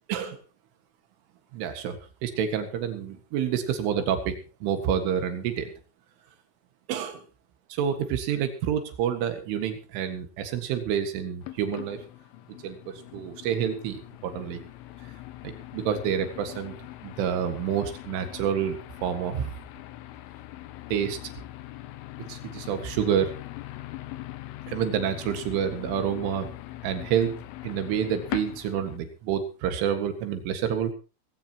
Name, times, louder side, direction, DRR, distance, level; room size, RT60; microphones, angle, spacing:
voice 1, 1.5-5.7 6.9-7.2 7.7-12.0 12.6-14.6 15.4-16.8 17.0-18.8 19.0-19.5 20.9-21.2 22.3-23.3 24.7-26.5 26.8-30.9, right 8 dB, 85° right, 8 dB, 4.3 m, -28 dB
sound 1, 11.4-29.0, left 16 dB, 85° left, 3.6 m, -42 dB
19.5 x 16.5 x 3.0 m, 0.33 s
omnidirectional pair, 5.5 m